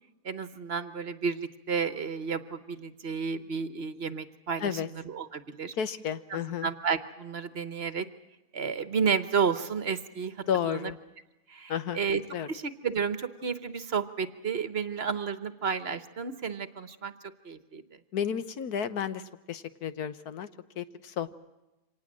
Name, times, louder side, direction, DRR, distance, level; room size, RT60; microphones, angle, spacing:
voice 1, 0.2-5.7 6.3-8.1 8.5-10.3 10.7-10.9 11.5-12.2 12.5-17.1 17.4-17.8, right 6 dB, 45° right, 12 dB, 1.2 m, -31 dB
voice 2, 5.8-6.7 10.5-11.0 11.7-12.0 12.3-12.5 18.1-20.5 20.8-21.3, left 8 dB, 80° left, 12 dB, 1.5 m, -32 dB
25.5 x 19.0 x 7.5 m, 1.0 s
omnidirectional pair, 1.6 m